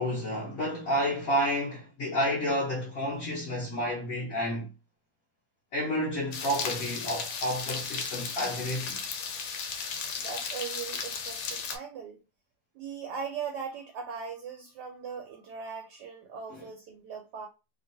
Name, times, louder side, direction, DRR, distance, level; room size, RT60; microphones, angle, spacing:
voice 1, 0.0-4.7 5.7-9.0, equal, 55° left, 1.1 m, -30 dB
sound 1, 6.3-11.8, left 5 dB, 85° left, 1.3 m, -35 dB
voice 2, 10.2-12.2 12.7-17.5, right 6 dB, 75° right, 1.0 m, -39 dB
3.0 x 2.5 x 2.6 m
omnidirectional pair, 2.1 m